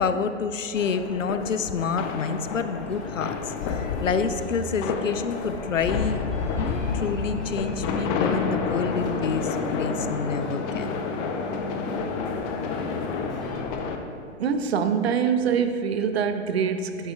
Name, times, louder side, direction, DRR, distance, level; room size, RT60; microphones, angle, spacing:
voice 1, 0.0-6.2 6.6-10.9, left 5 dB, 80° left, 10 dB, 0.7 m, -28 dB
sound 1, 0.7-14.0, left 5 dB, 25° left, 0.7 m, -30 dB
sound 2, 2.8-13.9, left 1 dB, ahead, 2.7 m, -41 dB
sound 3, 6.3-13.6, left 4 dB, 60° left, 1.8 m, -38 dB
voice 2, 14.4-17.1, right 6 dB, 55° right, 8 dB, 0.8 m, -24 dB
13.5 x 11.0 x 2.4 m, 2.3 s
figure-of-eight pair, 115°, 38 cm